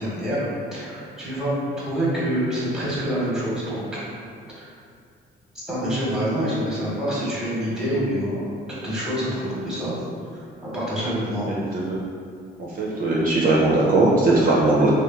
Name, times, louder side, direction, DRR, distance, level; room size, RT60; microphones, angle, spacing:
voice 1, 0.0-1.5 1.8-4.0 4.6-4.7 5.5-9.9 10.3-10.4 10.7-11.5, equal, 5° right, -7 dB, 0.9 m, -26 dB
voice 2, 12.8-14.9, right 2 dB, 45° right, -5 dB, 0.4 m, -19 dB
2.8 x 2.2 x 2.3 m, 2.3 s
cardioid pair, 90°, 20 cm